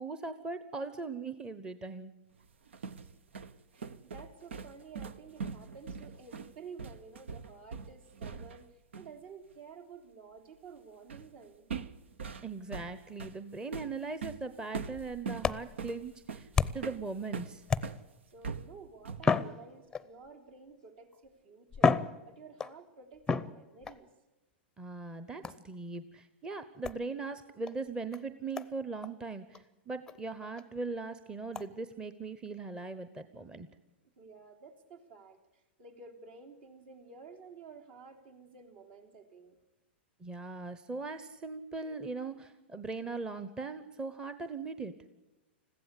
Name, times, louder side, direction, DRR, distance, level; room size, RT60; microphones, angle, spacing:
voice 1, 0.0-2.1 12.4-17.6 24.8-33.7 40.2-44.9, right 3 dB, 15° right, 11 dB, 0.9 m, -40 dB
sound 1, 2.5-8.7 8.9-9.2 11.1-11.3 11.7-18.0 18.4-19.4, right 5 dB, 85° right, 1.0 m, -42 dB
voice 2, 3.7-11.7 18.3-22.0 22.3-24.1 34.2-39.6, right 5 dB, 60° right, 3 dB, 3.6 m, -52 dB
sound 2, 14.9-17.0 17.7-18.3 19.2-20.3 21.1-21.2 21.7-22.8 23.3-24.0 25.4-25.7 26.8-27.0 27.7-27.8 28.1-28.2 28.6-28.7 29.0-29.1 29.5-29.6 30.1-30.2 30.6-30.7 31.5-31.7, left 5 dB, 10° left, 0.6 m, -32 dB
21.0 x 15.5 x 8.4 m, 1.0 s
hypercardioid pair, 130°, 6 cm